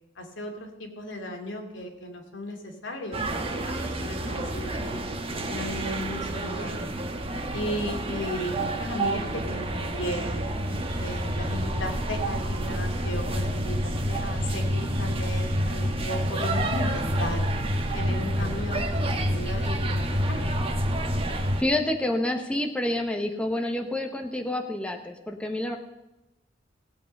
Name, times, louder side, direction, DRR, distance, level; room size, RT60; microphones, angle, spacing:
voice 1, 0.2-5.1 5.5-6.9 7.5-10.4 11.0-17.4 17.9-20.5, left 1 dB, 85° left, 2 dB, 2.6 m, -36 dB
sound 1, 3.1-21.6, right 1 dB, 30° right, 1.3 m, -28 dB
voice 2, 21.6-25.8, left 1 dB, 5° left, 3 dB, 1.0 m, -28 dB
18.0 x 8.4 x 5.3 m, 0.98 s
head